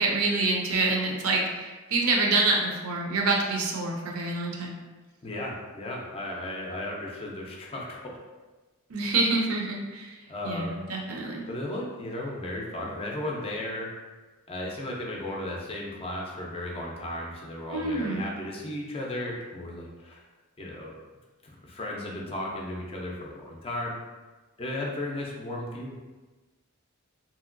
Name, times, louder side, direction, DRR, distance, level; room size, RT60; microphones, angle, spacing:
voice 1, 0.0-4.8 8.9-10.1 10.4-11.4 17.7-18.3, right 3 dB, 70° right, 0 dB, 0.5 m, -26 dB
voice 2, 5.2-8.2 10.3-10.8 11.1-13.9 14.5-20.2 20.6-20.9 21.4-24.0 24.6-26.0, left 1 dB, 25° left, -2 dB, 0.4 m, -35 dB
2.9 x 2.7 x 2.5 m, 1.2 s
head